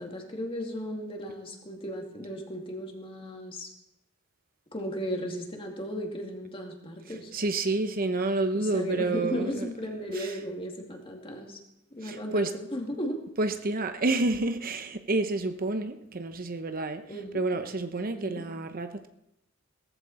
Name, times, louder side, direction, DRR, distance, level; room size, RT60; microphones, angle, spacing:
voice 1, 0.0-3.7 4.7-7.3 8.5-11.6 12.0-13.2 17.1-17.4 18.1-18.4, equal, 30° left, 2.5 m, -35 dB
voice 2, 7.3-9.7 10.2-10.3 12.0-12.5 13.4-17.0 17.3-19.1, right 2 dB, 45° right, 0.9 m, -29 dB
18.0 x 14.5 x 4.3 m
head